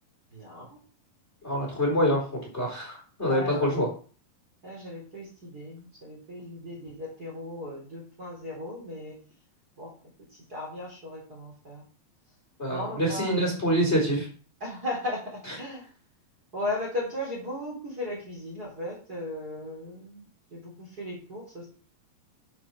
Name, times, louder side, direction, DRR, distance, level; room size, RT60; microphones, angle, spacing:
voice 1, 0.3-0.8 3.2-3.7 4.6-9.2 9.8-9.9 10.5-11.8 12.7-13.6 14.6-15.9 16.5-20.2 20.5-21.7, left 1 dB, 25° right, -3 dB, 4.0 m, -36 dB
voice 2, 1.4-2.2 2.5-3.9 12.6-14.3, equal, 15° left, -2 dB, 4.0 m, -25 dB
10.5 x 7.2 x 6.1 m, 0.40 s
omnidirectional pair, 4.3 m